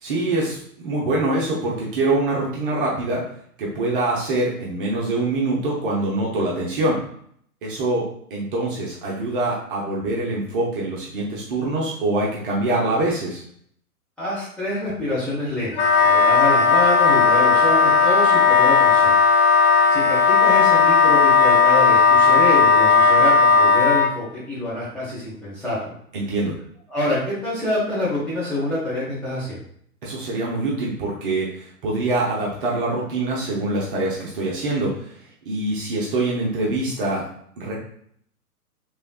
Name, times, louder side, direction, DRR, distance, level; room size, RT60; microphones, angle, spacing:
voice 1, 0.0-3.2 3.6-7.0 7.6-13.4 26.1-26.5 30.0-35.1 35.5-37.2 37.6-37.7, right 2 dB, 35° right, -4 dB, 0.8 m, -24 dB
voice 2, 14.2-19.1 19.9-26.0 26.9-29.6, left 1 dB, ahead, -10 dB, 1.0 m, -26 dB
Wind instrument woodwind instrument, 15.7-24.1, left 5 dB, 40° left, 0.6 m, -15 dB
3.4 x 3.3 x 2.3 m, 0.64 s
figure-of-eight pair, 115°, 46 cm